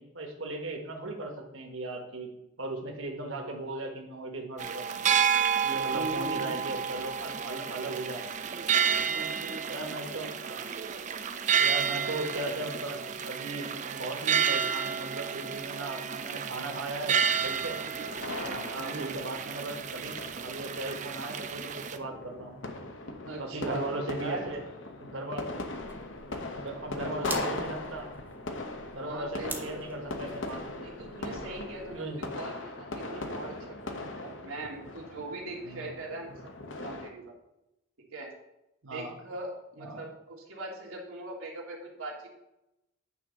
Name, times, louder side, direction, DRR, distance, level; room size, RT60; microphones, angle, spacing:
voice 1, 0.0-2.3 2.6-5.1 5.6-8.5 9.7-10.7 11.6-17.8 18.4-20.2 20.4-22.6 23.4-24.6 25.0-25.4 26.6-28.1 28.9-30.6 31.2-31.4 31.9-32.2 35.6-35.9 36.3-36.4 38.8-39.1 39.8-40.0, right 2 dB, 65° right, 2 dB, 1.3 m, -37 dB
sound 1, 4.6-22.0, right 7 dB, 35° right, 0.4 m, -31 dB
voice 2, 5.9-6.6 9.0-10.3 18.8-19.2 23.3-23.8 24.1-24.5 26.9-27.4 29.0-29.8 30.8-36.3 36.6-37.4 38.0-38.3 38.9-42.3, right 2 dB, 90° right, -2 dB, 1.8 m, -41 dB
sound 2, 17.3-37.1, left 2 dB, 60° left, 0.9 m, -40 dB
sound 3, 25.7-32.0, right 3 dB, 10° right, 0.8 m, -46 dB
9.0 x 3.6 x 6.4 m, 0.88 s
head